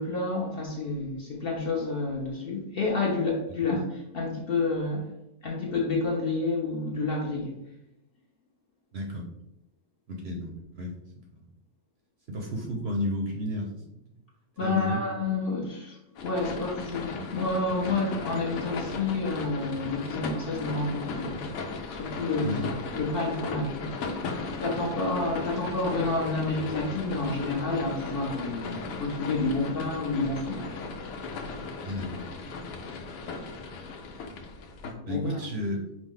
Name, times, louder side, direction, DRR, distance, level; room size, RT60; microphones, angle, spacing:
voice 1, 0.0-5.1 5.4-7.5 14.6-21.5 21.9-22.7 23.0-30.9 35.1-35.4, left 3 dB, 55° left, -2 dB, 0.7 m, -29 dB
voice 2, 8.9-9.3 10.1-11.4 12.3-14.0 14.6-15.0 22.4-22.6 31.8-32.3 35.1-35.8, left 1 dB, 60° right, 1 dB, 0.8 m, -32 dB
sound 1, 16.2-34.9, left 4 dB, 80° left, 1.1 m, -36 dB
4.9 x 2.0 x 3.7 m, 0.84 s
omnidirectional pair, 1.5 m